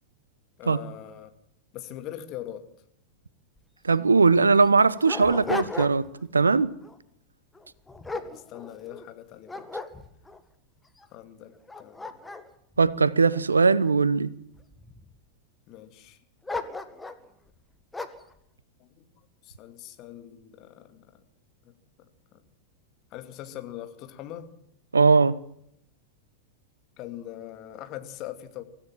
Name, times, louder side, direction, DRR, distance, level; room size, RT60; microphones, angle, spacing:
voice 1, 0.6-1.3 1.7-2.7 8.1-9.7 11.1-12.2 15.7-16.2 18.8-19.1 19.4-21.2 21.6-22.1 22.3-22.4 23.1-24.5 27.0-28.6, left 12 dB, 40° left, 2.5 m, -42 dB
Dog, 3.6-3.7 3.9-4.0 4.6-6.2 6.6-7.0 7.5-9.0 9.5-10.4 11.0-11.1 11.5-13.9 14.5-15.2 16.4-17.3 17.9-18.3, left 3 dB, 10° left, 1.9 m, -36 dB
voice 2, 3.8-6.1 6.3-6.7 12.8-14.3 24.9-25.4, right 4 dB, 75° right, 0.9 m, -20 dB
24.5 x 16.0 x 7.6 m
figure-of-eight pair, 90°, 0 cm